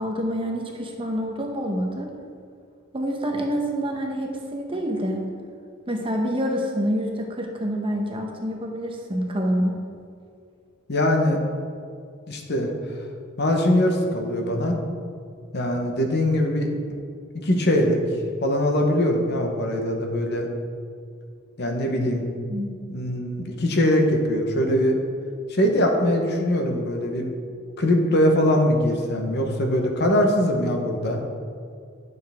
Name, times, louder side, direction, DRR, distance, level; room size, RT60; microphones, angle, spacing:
voice 1, 0.0-2.1 2.9-5.2 5.9-9.7 22.5-22.8, equal, 25° right, 1 dB, 0.9 m, -27 dB
voice 2, 10.9-11.4 12.3-12.7 13.4-14.8 15.5-16.7 17.4-18.0 18.4-20.5 21.6-22.2 22.9-25.0 25.5-27.3 27.8-31.2, left 1 dB, 55° left, 3 dB, 1.0 m, -22 dB
9.7 x 6.7 x 3.5 m, 2.3 s
head